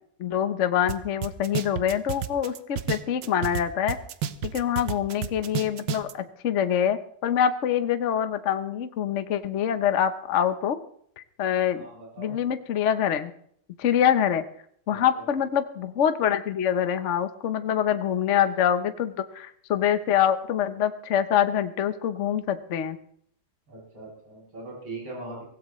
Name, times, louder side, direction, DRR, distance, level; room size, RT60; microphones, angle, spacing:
voice 1, 0.2-4.0 4.4-10.8 11.2-11.9 12.2-13.3 13.8-14.4 14.9-23.0, left 9 dB, 55° left, 10 dB, 0.8 m, -25 dB
sound 1, 0.9-1.0 1.2-3.6 3.9-6.1, right 9 dB, 65° right, 1.3 m, -30 dB
voice 2, 11.7-12.4 14.9-15.3 23.7-25.4, right 2 dB, 85° right, -4 dB, 9.0 m, -40 dB
24.0 x 16.5 x 3.1 m, 0.65 s
omnidirectional pair, 2.4 m